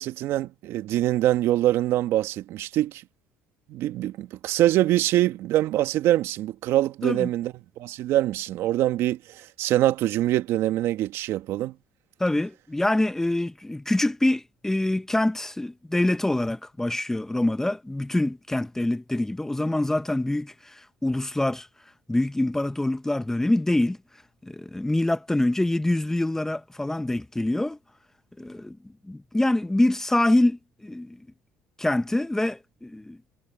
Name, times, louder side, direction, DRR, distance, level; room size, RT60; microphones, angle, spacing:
voice 1, 0.0-3.0 3.7-7.5 7.8-11.7, right 14 dB, 70° right, 1.9 m, -24 dB
voice 2, 12.2-21.7 22.1-24.0 24.4-27.8 28.4-28.8 29.1-31.2 31.8-33.2, left 1 dB, 10° left, 1.2 m, -25 dB
supercardioid pair, 75°, 5 cm